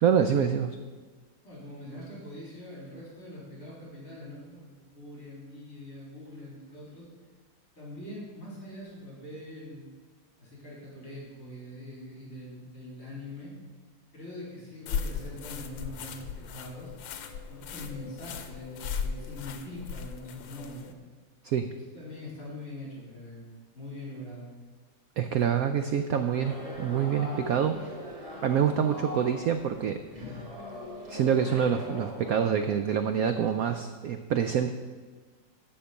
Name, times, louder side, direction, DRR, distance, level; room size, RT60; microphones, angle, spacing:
voice 1, 0.0-0.8 21.4-21.7 25.2-27.9 28.4-30.4 31.1-34.7, right 8 dB, 75° right, 8 dB, 0.8 m, -26 dB
voice 2, 1.4-7.1 7.8-9.9 10.4-13.5 14.1-16.9 17.5-20.9 21.9-23.4 23.7-24.5, left 1 dB, 45° left, -5 dB, 4.2 m, -43 dB
sound 1, 14.9-20.9, left 6 dB, 80° left, 1.5 m, -37 dB
sound 2, 26.2-32.5, left 1 dB, 10° right, 2.9 m, -41 dB
13.0 x 4.4 x 8.1 m, 1.4 s
omnidirectional pair, 2.0 m